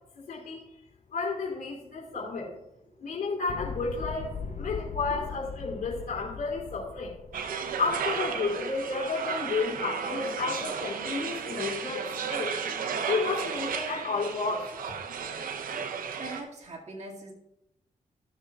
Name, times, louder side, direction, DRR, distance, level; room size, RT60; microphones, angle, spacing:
voice 1, 0.3-0.8 1.1-2.5 3.0-4.3 4.6-7.1 7.8-12.6 13.1-15.0, left 4 dB, 80° left, -2 dB, 3.2 m, -32 dB
voice 2, 2.1-2.6 2.9-3.0 3.7-3.8 4.4-5.2 16.2-17.3, right 2 dB, 50° right, -2 dB, 2.2 m, -44 dB
sound 1, 3.5-8.7, left 6 dB, 55° left, 0.8 m, -40 dB
sound 2, 7.3-16.4, right 6 dB, 85° right, 0.8 m, -34 dB
17.0 x 6.7 x 2.4 m, 0.85 s
cardioid pair, 70°, 14 cm